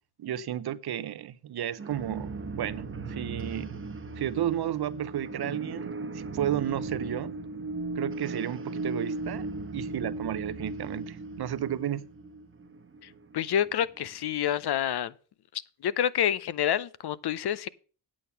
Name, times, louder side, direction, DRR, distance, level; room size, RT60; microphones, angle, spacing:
voice 1, 0.2-3.7 4.2-7.3 8.0-9.5 9.7-12.0, right 11 dB, 55° right, 0.7 m, -32 dB
sound 1, 1.8-14.3, right 3 dB, 25° right, 1.1 m, -37 dB
voice 2, 13.3-15.1 15.8-17.7, left 10 dB, 55° left, 0.7 m, -28 dB
8.6 x 8.5 x 5.7 m
cardioid pair, 90°, 46 cm